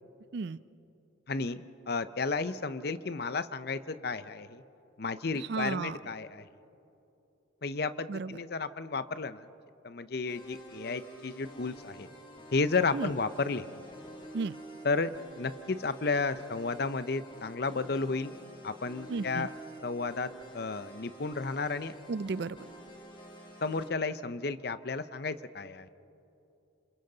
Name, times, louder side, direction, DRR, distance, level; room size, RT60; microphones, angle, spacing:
voice 1, 1.3-1.6 1.9-4.6 5.0-6.5 7.6-9.5 9.8-12.1 12.5-13.7 14.8-18.3 18.6-19.5 19.8-21.9 23.6-25.9, left 4 dB, 50° left, 13 dB, 0.6 m, -32 dB
voice 2, 5.4-6.0 8.1-8.4 12.9-13.1 14.3-14.6 19.1-19.5 22.1-22.7, right 4 dB, 55° right, 18 dB, 0.4 m, -34 dB
sound 1, 10.3-23.9, right 1 dB, 25° left, 1.7 m, -49 dB
27.5 x 27.5 x 4.0 m, 2.9 s
head